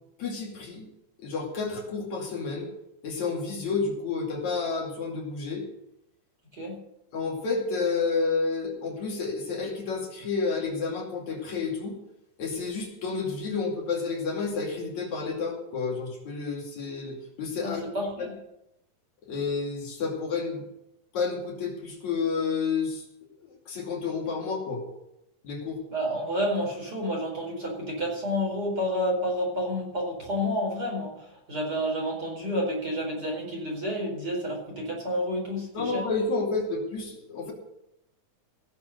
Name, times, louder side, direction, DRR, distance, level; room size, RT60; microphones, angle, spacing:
voice 1, 0.2-0.9 1.2-2.7 3.0-5.7 7.1-12.0 12.4-17.9 18.2-18.3 19.3-20.6 21.1-23.0 23.7-24.8 25.4-25.8 35.7-37.5, left 4 dB, 65° left, -1 dB, 3.9 m, -30 dB
voice 2, 17.6-18.3 25.9-36.1, equal, 30° right, -3 dB, 5.0 m, -30 dB
17.5 x 7.3 x 6.6 m, 0.84 s
omnidirectional pair, 3.5 m